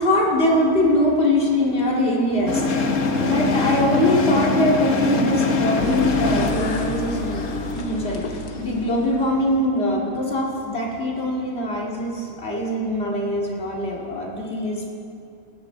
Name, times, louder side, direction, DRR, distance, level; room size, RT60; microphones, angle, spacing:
voice 1, 0.0-14.9, left 1 dB, 45° left, -3 dB, 2.6 m, -22 dB
sound 1, 2.5-7.7, left 3 dB, 60° left, 1.4 m, -23 dB
Bowed string instrument, 3.1-10.3, right 3 dB, 40° right, 1.6 m, -35 dB
sound 2, 5.8-9.7, left 7 dB, 75° left, 1.4 m, -33 dB
18.0 x 12.0 x 3.9 m, 2.5 s
omnidirectional pair, 1.5 m